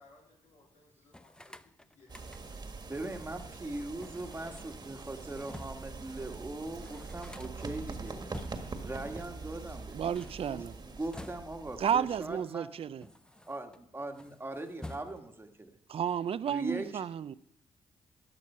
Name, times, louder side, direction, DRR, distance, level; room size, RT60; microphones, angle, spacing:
voice 1, 0.0-2.5, left 3 dB, 75° left, 3.1 m, -62 dB
sound 1, 1.1-2.7 4.0-6.0 6.3-6.4 6.6-8.9 9.9-11.8 12.5-13.8 14.1-15.5, left 1 dB, 5° left, 0.5 m, -50 dB
sound 2, 2.1-12.4, right 4 dB, 35° right, 1.6 m, -44 dB
voice 2, 2.9-8.3 8.8-12.7 13.5-15.8 16.4-17.0, right 2 dB, 20° right, 1.5 m, -40 dB
voice 3, 9.9-10.7 11.8-13.0 15.9-17.3, right 8 dB, 55° right, 0.5 m, -32 dB
13.0 x 9.3 x 5.5 m
supercardioid pair, 60°, 12 cm